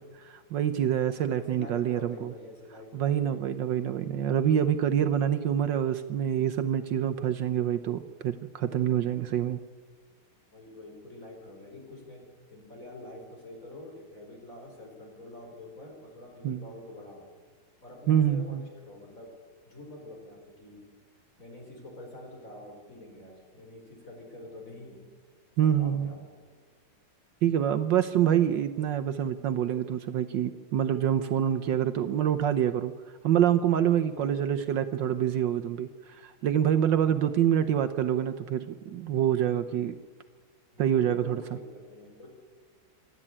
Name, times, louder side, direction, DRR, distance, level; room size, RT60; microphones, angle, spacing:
voice 1, 0.0-2.3 2.9-9.6 16.4-16.6 18.1-18.6 25.6-26.1 27.4-32.9 33.2-39.9 40.8-41.4, right 10 dB, 70° right, 10 dB, 1.3 m, -26 dB
voice 2, 1.5-3.4 10.5-12.2 12.5-17.2 17.8-19.3 19.7-20.8 21.4-25.0 25.6-26.4 34.0-35.1 37.0-37.8 40.7-42.3, left 1 dB, 40° left, 1 dB, 5.2 m, -46 dB
27.0 x 11.0 x 8.7 m, 1.5 s
omnidirectional pair, 2.3 m